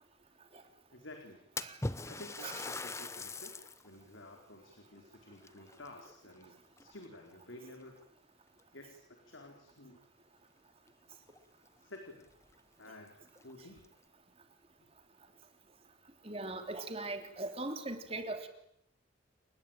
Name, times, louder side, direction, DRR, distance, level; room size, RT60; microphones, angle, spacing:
voice 1, 0.9-1.4 2.1-3.5 3.8-7.9 8.7-10.0 11.8-12.3 12.8-13.2 13.4-13.8, left 1 dB, 75° left, 3 dB, 4.3 m, -52 dB
Splash splatter, 1.6-3.9 4.4-4.5 5.4-6.4 6.8-7.2 8.0-8.1 8.6-8.7 10.9-11.0 11.3-11.4 11.9-12.0 12.4-12.5 13.3-13.9, left 2 dB, 15° left, 0.9 m, -41 dB
voice 2, 16.2-18.5, right 2 dB, 30° right, 6 dB, 3.3 m, -40 dB
30.0 x 19.5 x 9.0 m, 0.76 s
head